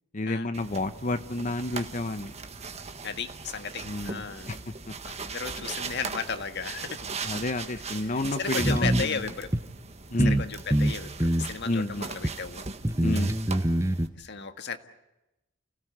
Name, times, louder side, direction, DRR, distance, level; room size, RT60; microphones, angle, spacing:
voice 1, 0.1-2.3 3.8-4.2 4.5-4.6 7.2-9.2 10.1-10.4 11.7-12.1 13.0-13.4, left 2 dB, 40° left, 10 dB, 0.9 m, -30 dB
sound 1, 0.5-14.1, right 5 dB, 30° right, 1.7 m, -39 dB
voice 2, 3.0-4.5 5.0-7.1 8.0-9.5 10.1-12.6 13.0-13.3 14.1-14.8, left 5 dB, 55° left, 8 dB, 1.7 m, -35 dB
sound 2, 8.6-9.1 9.5-9.6 10.2-10.5 10.7-11.5 12.2-12.3 12.8-14.1, right 1 dB, 15° right, 0.8 m, -24 dB
30.0 x 17.0 x 8.1 m, 0.96 s
head